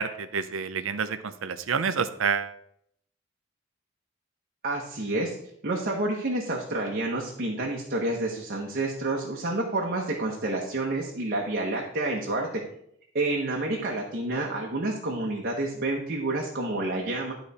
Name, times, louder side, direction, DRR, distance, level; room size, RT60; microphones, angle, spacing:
voice 1, 0.0-2.5, right 6 dB, 85° right, 11 dB, 0.6 m, -28 dB
voice 2, 4.6-5.4 5.6-12.5 13.1-17.3, right 2 dB, 50° right, -1 dB, 1.0 m, -29 dB
11.5 x 4.0 x 4.1 m, 0.73 s
head